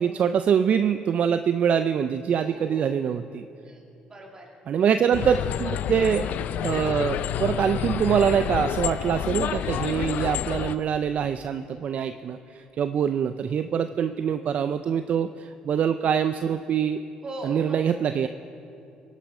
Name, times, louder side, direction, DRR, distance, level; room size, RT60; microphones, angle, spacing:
voice 1, 0.0-3.4 4.7-6.2 6.6-17.0 17.4-18.3, right 8 dB, 55° right, 10 dB, 0.4 m, -24 dB
voice 2, 2.3-2.9 3.7-4.5 17.2-17.9, right 2 dB, 30° right, 0 dB, 2.8 m, -40 dB
sound 1, 5.1-10.8, left 10 dB, 70° left, 0.4 m, -29 dB
18.5 x 8.3 x 5.4 m, 2.7 s
supercardioid pair, 75°, 3 cm